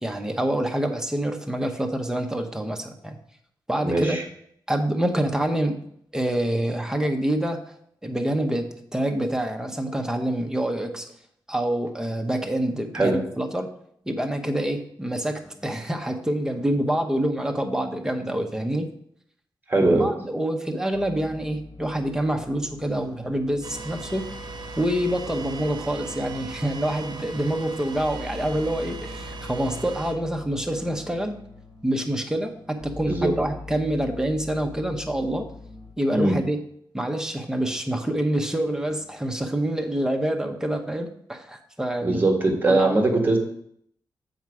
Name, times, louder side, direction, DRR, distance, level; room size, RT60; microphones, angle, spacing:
voice 1, 0.0-3.2 3.7-4.2 4.7-5.8 6.1-7.7 8.0-11.1 11.5-13.7 14.1-18.9 19.8-24.3 24.8-31.4 31.8-35.5 36.0-36.6 36.9-42.3 42.7-43.0, right 1 dB, 5° right, 4 dB, 0.9 m, -26 dB
voice 2, 3.8-4.2 12.9-13.2 19.7-20.1 33.1-33.3 36.1-36.4 42.0-43.4, right 2 dB, 25° right, 2 dB, 1.6 m, -21 dB
sound 1, 20.9-35.9, left 3 dB, 55° left, 2.5 m, -43 dB
sound 2, 23.6-30.1, right 5 dB, 65° right, 0.8 m, -39 dB
7.1 x 5.2 x 4.8 m, 0.69 s
wide cardioid pair, 95°, 8 cm